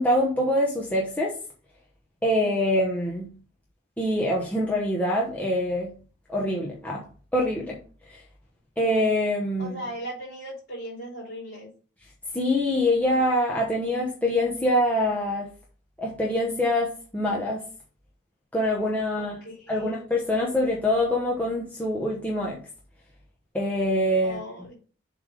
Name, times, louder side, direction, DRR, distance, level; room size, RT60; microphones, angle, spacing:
voice 1, 0.0-1.3 2.2-3.3 4.0-5.9 6.3-7.0 7.3-7.8 8.1-8.2 8.8-9.8 12.3-15.5 16.0-17.6 18.5-19.4 19.7-22.6 23.5-24.4, left 1 dB, 10° left, -3 dB, 0.9 m, -25 dB
voice 2, 9.6-11.7 19.2-20.1 24.2-24.7, right 1 dB, 50° left, -7 dB, 3.4 m, -38 dB
7.1 x 3.3 x 5.1 m, 0.38 s
head